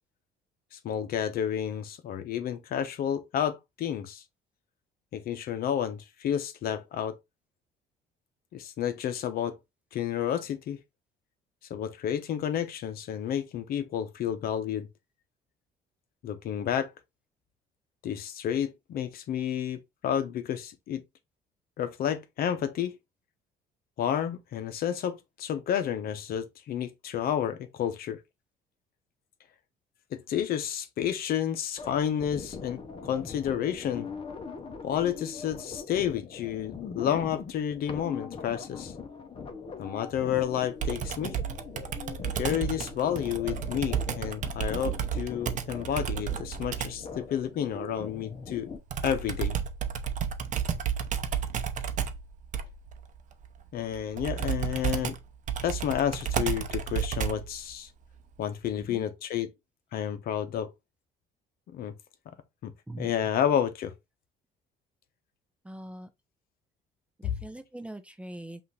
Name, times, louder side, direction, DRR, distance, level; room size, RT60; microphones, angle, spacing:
voice 1, 0.7-4.2 5.1-7.2 8.5-9.6 9.9-10.8 11.7-14.9 16.2-16.9 18.0-21.0 21.8-23.0 24.0-28.2 30.1-34.1 34.8-38.9 39.8-41.4 42.3-48.7 49.0-49.6 53.7-55.2 55.6-57.9 58.4-59.5 59.9-60.7 61.7-61.9 62.6-62.7 63.0-63.9 67.2-67.4, left 9 dB, 60° left, 0.8 m, -30 dB
sound 1, 31.8-48.8, left 5 dB, 30° left, 0.8 m, -42 dB
Computer keyboard, 40.8-47.1 48.9-57.6, right 8 dB, 45° right, 0.7 m, -32 dB
voice 2, 65.6-66.1 67.2-68.6, right 1 dB, 5° right, 0.5 m, -42 dB
5.5 x 2.6 x 3.2 m
cardioid pair, 110°, 17 cm